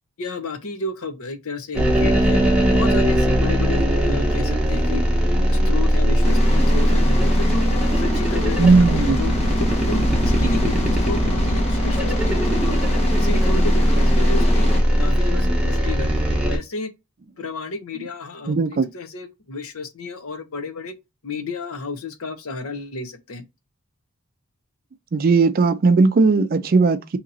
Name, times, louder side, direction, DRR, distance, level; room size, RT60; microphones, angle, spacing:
voice 1, 0.2-2.4 2.7-5.0 5.5-7.7 7.9-12.7 13.1-14.7 15.0-16.9 17.4-20.9 21.2-23.4, left 3 dB, 70° left, 0.7 m, -32 dB
sound 1, 1.7-16.6, equal, 5° right, 0.8 m, -19 dB
sound 2, 6.2-14.8, left 1 dB, 30° left, 0.7 m, -27 dB
voice 2, 8.6-9.3 18.5-18.9 25.1-27.2, right 4 dB, 40° right, 0.4 m, -17 dB
2.8 x 2.7 x 3.8 m
head